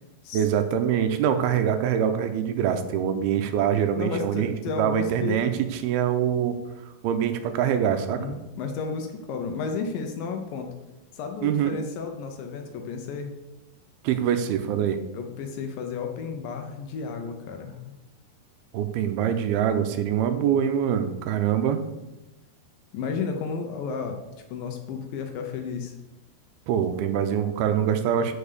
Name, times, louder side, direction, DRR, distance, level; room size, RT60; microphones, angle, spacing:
voice 1, 0.3-6.6 7.0-8.2 11.4-11.8 14.0-15.0 18.7-21.8 26.7-28.4, right 9 dB, 85° right, 8 dB, 2.5 m, -24 dB
voice 2, 4.0-5.4 8.2-10.7 11.1-13.4 14.1-14.2 15.1-18.0 22.9-24.2 24.5-25.9, left 5 dB, 75° left, 5 dB, 2.3 m, -33 dB
7.2 x 6.8 x 6.7 m, 1.0 s
omnidirectional pair, 4.6 m